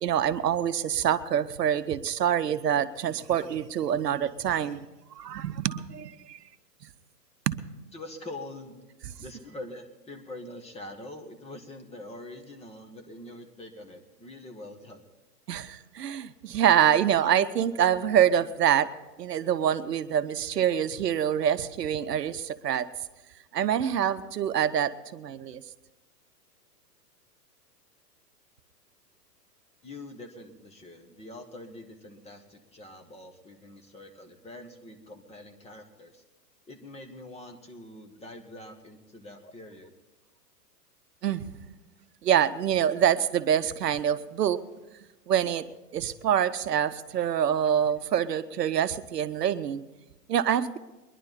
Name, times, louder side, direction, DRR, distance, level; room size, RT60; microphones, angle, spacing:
voice 1, 0.0-4.9 5.1-6.4 7.5-7.6 15.5-18.9 19.2-22.9 23.5-25.6 41.2-41.5 42.2-44.6 45.3-45.7 45.9-49.8 50.3-50.8, right 9 dB, 75° right, 12 dB, 0.9 m, -26 dB
voice 2, 7.9-8.8 9.2-15.1 29.8-36.2 36.7-39.9, left 1 dB, 15° left, 5 dB, 1.5 m, -44 dB
22.5 x 11.0 x 4.2 m, 1.1 s
hypercardioid pair, 115°, 48 cm